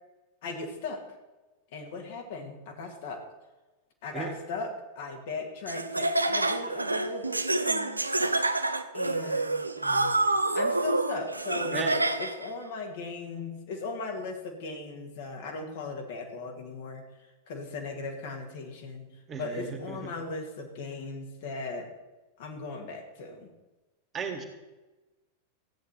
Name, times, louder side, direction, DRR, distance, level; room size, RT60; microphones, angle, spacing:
voice 1, 0.4-1.0 1.7-3.2 4.0-4.7 5.0-8.0 8.9-10.2 10.5-11.8 12.2-17.0 17.5-19.1 19.4-21.9 22.4-23.5, left 3 dB, 50° left, 2 dB, 2.3 m, -38 dB
Laughter, 5.7-12.5, right 2 dB, 80° right, 0.6 m, -27 dB
voice 2, 19.3-20.1 24.1-24.4, right 5 dB, 25° right, 2 dB, 2.0 m, -35 dB
14.5 x 9.3 x 4.4 m, 1.1 s
figure-of-eight pair, 90°, 0 cm